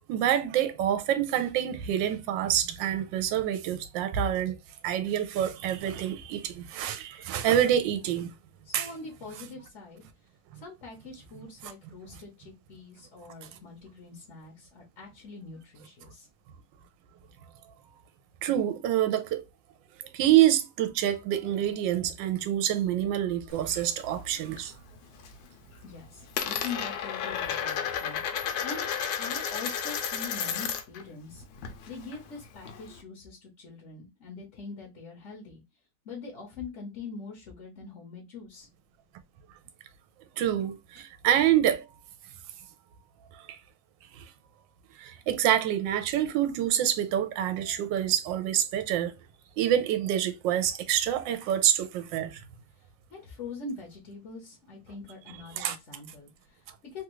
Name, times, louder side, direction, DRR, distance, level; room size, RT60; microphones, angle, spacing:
voice 1, 0.1-4.6 4.8-8.3 8.7-8.9 10.5-10.6 12.1-12.2 13.4-13.5 18.4-19.4 20.0-24.7 40.4-41.9 43.3-43.6 44.1-44.3 44.9-49.1 49.6-52.4 55.6-55.8, right 11 dB, 75° right, 1.3 m, -27 dB
voice 2, 8.6-10.0 10.5-16.3 25.8-28.9 29.2-31.4 31.9-35.6 36.0-38.7 53.1-57.0, left 4 dB, 50° left, 0.9 m, -43 dB
Coin (dropping), 23.5-24.7 25.0-25.5 25.7-31.0 31.3-33.0, left 8 dB, 80° left, 1.4 m, -33 dB
3.4 x 2.4 x 3.0 m
omnidirectional pair, 2.1 m